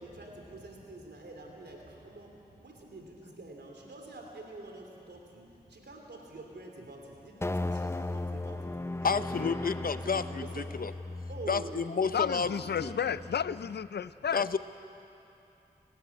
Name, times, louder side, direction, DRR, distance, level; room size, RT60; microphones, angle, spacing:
voice 1, 0.0-9.6 10.0-10.7 11.3-11.9 12.3-13.0, right 2 dB, 90° right, 1 dB, 3.2 m, -47 dB
sound 1, 7.4-13.9, left 2 dB, 15° left, 0.6 m, -37 dB
voice 2, 9.0-10.9 11.5-12.5 12.8-12.9 14.3-14.6, left 5 dB, 60° left, 12 dB, 0.8 m, -30 dB
voice 3, 12.1-14.4, left 8 dB, 80° left, 16 dB, 0.5 m, -32 dB
28.5 x 12.5 x 9.8 m, 2.8 s
cardioid pair, 50°, 17 cm